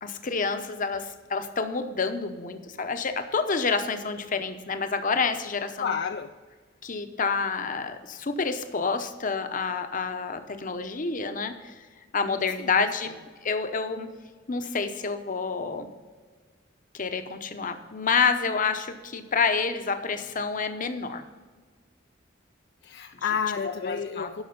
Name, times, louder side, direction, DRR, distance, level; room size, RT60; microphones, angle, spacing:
voice 1, 0.0-5.9 6.8-11.7 12.1-13.1 13.4-14.1 14.5-15.9 16.9-21.2 23.8-24.4, left 5 dB, 45° left, 8 dB, 0.8 m, -28 dB
voice 2, 5.8-6.4 12.3-12.9 22.8-24.4, left 6 dB, 60° left, 7 dB, 0.4 m, -31 dB
12.0 x 6.0 x 5.3 m, 1.5 s
head